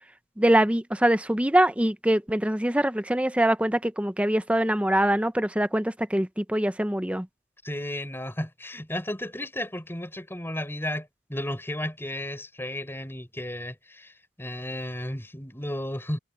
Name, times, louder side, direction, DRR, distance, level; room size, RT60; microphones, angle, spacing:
voice 1, 0.4-7.3, right 1 dB, 5° right, 0.7 m, -23 dB
voice 2, 7.6-14.1 14.4-16.2, left 1 dB, 10° left, 5.2 m, -33 dB
head